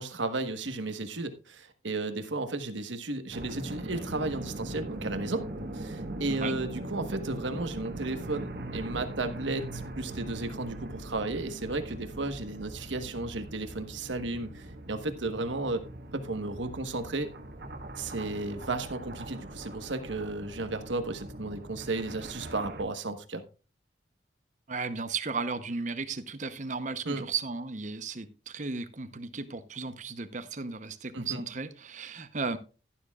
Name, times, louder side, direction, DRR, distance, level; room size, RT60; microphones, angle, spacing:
voice 1, 0.0-5.5 5.7-15.8 16.1-17.3 18.0-23.4 27.0-27.2 31.1-31.4, right 2 dB, 90° right, 1.3 m, -34 dB
sound 1, 3.3-22.8, right 1 dB, 60° right, 1.5 m, -41 dB
voice 2, 24.7-32.6, right 4 dB, 40° right, 0.8 m, -35 dB
12.0 x 11.5 x 2.4 m
head